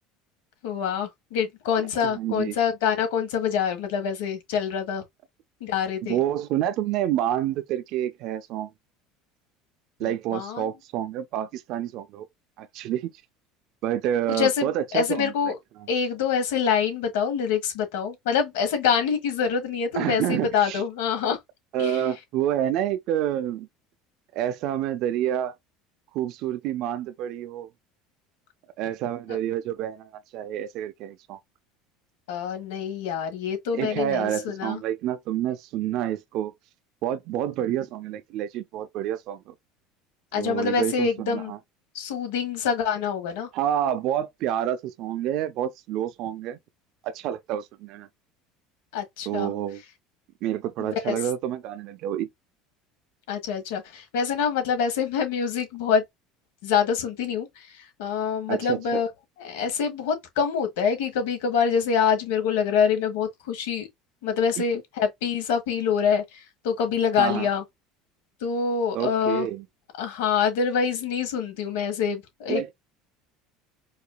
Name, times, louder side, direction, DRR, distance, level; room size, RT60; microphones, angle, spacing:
voice 1, 0.6-5.0 5.6-6.2 10.3-10.7 14.4-15.6 15.9-21.4 21.8-22.0 32.3-34.8 40.3-41.5 41.9-43.5 48.9-49.5 50.8-51.1 53.3-56.0 56.6-59.1 59.4-63.9 64.2-67.6 68.4-69.5 70.0-72.6, left 7 dB, 90° left, 1.4 m, -25 dB
voice 2, 1.8-2.6 6.0-8.7 10.0-12.3 12.6-13.1 13.8-15.5 19.9-20.8 21.7-23.7 24.3-25.6 26.1-27.7 28.8-31.4 33.7-36.5 37.0-39.5 40.4-41.6 43.5-46.6 47.0-48.1 49.3-49.8 50.4-52.3 58.5-59.0 64.6-64.7 67.2-67.5 68.9-69.6 72.5-72.7, right 11 dB, 55° right, 0.4 m, -28 dB
4.8 x 2.6 x 2.2 m
supercardioid pair, 135°, 0 cm